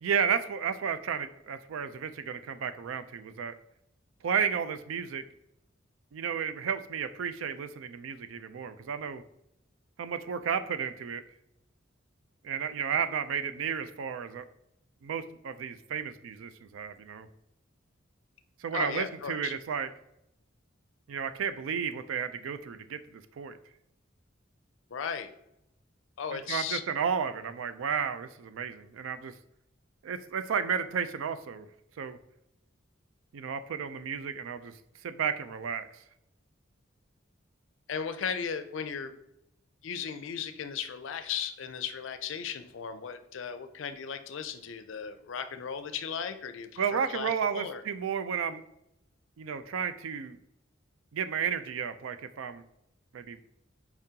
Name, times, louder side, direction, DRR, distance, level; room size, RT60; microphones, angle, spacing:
voice 1, 0.0-3.5 4.2-5.3 6.1-9.2 10.0-11.2 12.4-14.5 15.0-17.3 18.6-19.9 21.1-23.5 26.3-29.3 30.0-31.7 32.0-32.2 33.3-34.7 35.0-36.0 46.8-48.6 49.4-50.4 51.1-52.6 53.1-53.4, right 7 dB, 90° right, 11 dB, 0.4 m, -32 dB
voice 2, 18.7-19.5 24.9-25.3 26.2-26.8 37.9-39.2 39.8-47.8, left 7 dB, 75° left, 9 dB, 0.4 m, -36 dB
4.6 x 3.7 x 2.8 m, 0.80 s
head